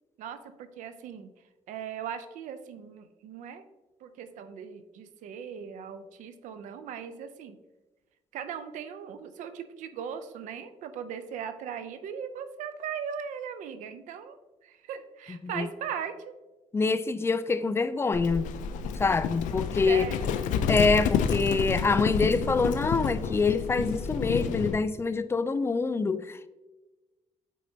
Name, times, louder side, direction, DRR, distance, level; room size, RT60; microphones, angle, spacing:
voice 1, 0.2-1.3 1.7-3.6 4.0-7.6 8.3-14.4 14.6-16.3 19.8-20.3, right 8 dB, 90° right, 0.5 m, -38 dB
voice 2, 16.7-18.5 19.0-20.0 20.7-26.5, left 4 dB, 20° left, 0.3 m, -25 dB
Livestock farm animals working animals, 18.1-24.8, left 7 dB, 90° left, 0.4 m, -29 dB
8.2 x 4.2 x 2.7 m
cardioid pair, 95°, 13 cm